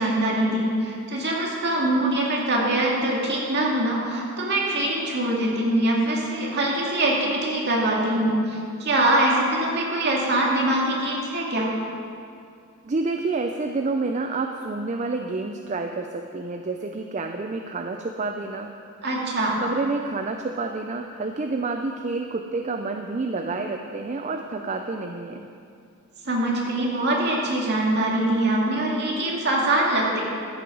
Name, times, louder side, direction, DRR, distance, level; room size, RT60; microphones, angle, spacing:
voice 1, 0.0-11.7 19.0-19.5 26.2-30.2, right 1 dB, 50° right, -3 dB, 2.2 m, -23 dB
voice 2, 12.8-18.7 19.6-25.5, right 3 dB, 35° right, 4 dB, 0.5 m, -29 dB
14.0 x 7.7 x 5.3 m, 2.4 s
head